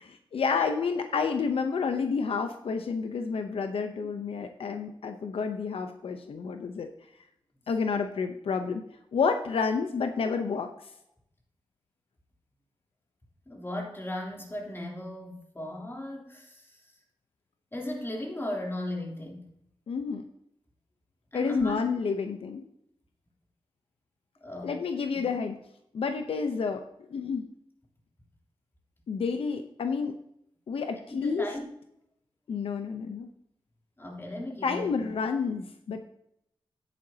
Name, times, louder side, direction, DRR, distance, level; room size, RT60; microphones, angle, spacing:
voice 1, 0.0-6.9 7.7-8.8 9.1-10.7 19.9-20.2 21.3-22.7 24.6-25.5 25.9-26.8 27.1-27.5 29.1-30.2 30.7-31.5 32.5-33.3 34.6-36.0, left 5 dB, 85° left, 7 dB, 0.8 m, -30 dB
voice 2, 13.5-16.9 17.7-19.5 21.3-21.8 24.4-24.8 31.1-31.6 34.0-35.1, left 1 dB, 25° left, -1 dB, 3.4 m, -36 dB
9.6 x 9.5 x 2.8 m, 0.74 s
cardioid pair, 55°, 9 cm